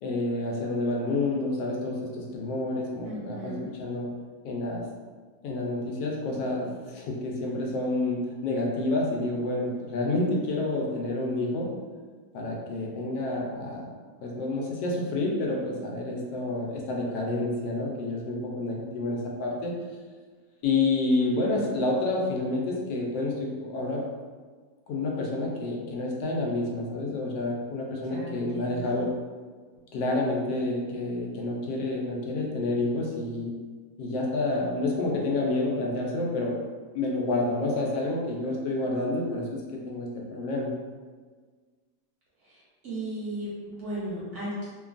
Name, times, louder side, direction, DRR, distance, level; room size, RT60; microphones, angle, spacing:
voice 1, 0.0-4.1 4.4-4.9 5.4-11.7 12.3-13.9 14.2-19.7 20.6-24.0 24.9-29.1 29.9-33.5 34.0-36.6 36.9-40.7, left 2 dB, 90° left, -1 dB, 1.2 m, -29 dB
voice 2, 3.0-3.7 21.2-21.7 28.1-29.0 42.8-44.7, right 1 dB, 55° right, -8 dB, 0.9 m, -36 dB
3.1 x 2.2 x 2.4 m, 1.5 s
omnidirectional pair, 1.8 m